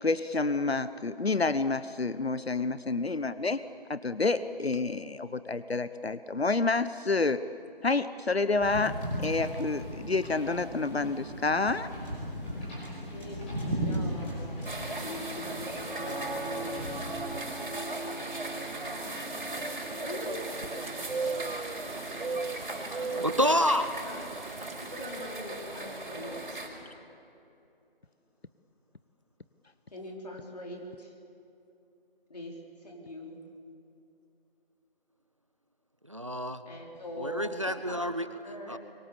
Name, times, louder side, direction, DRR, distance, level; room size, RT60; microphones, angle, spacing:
voice 1, 0.0-3.6 3.9-7.4 7.8-11.9, left 3 dB, 85° left, 13 dB, 1.0 m, -29 dB
Wind / Boat Water vehicle, 8.6-17.2, equal, 10° left, 5.5 m, -36 dB
voice 2, 13.1-14.7 14.9-16.8 17.1-18.5 19.4-20.5 22.7-23.3 24.0-24.2 24.8-26.7 29.9-31.1 32.3-33.4 36.6-38.0 38.4-38.8, left 1 dB, 40° left, -1 dB, 4.8 m, -43 dB
sound 1, 14.6-26.7, right 2 dB, 55° right, 5.4 m, -37 dB
sound 2, 18.8-25.5, right 4 dB, 70° right, 0.6 m, -39 dB
voice 3, 23.2-23.9 36.1-36.6 37.2-38.3 38.7-38.8, equal, 30° right, 11 dB, 0.7 m, -28 dB
27.0 x 24.0 x 7.2 m, 2.8 s
figure-of-eight pair, 170°, 30 cm